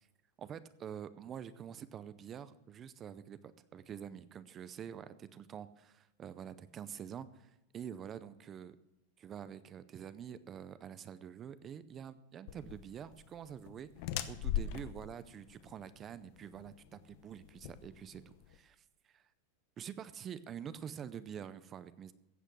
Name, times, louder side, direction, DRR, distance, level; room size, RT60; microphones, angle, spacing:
voice 1, 0.4-8.8 9.2-13.9 14.3-19.2 19.8-22.1, right 8 dB, 25° right, 14 dB, 0.5 m, -47 dB
sound 1, 12.5-18.6, left 10 dB, 50° left, 0.9 m, -41 dB
15.0 x 8.0 x 6.2 m, 0.91 s
supercardioid pair, 155°, 0 cm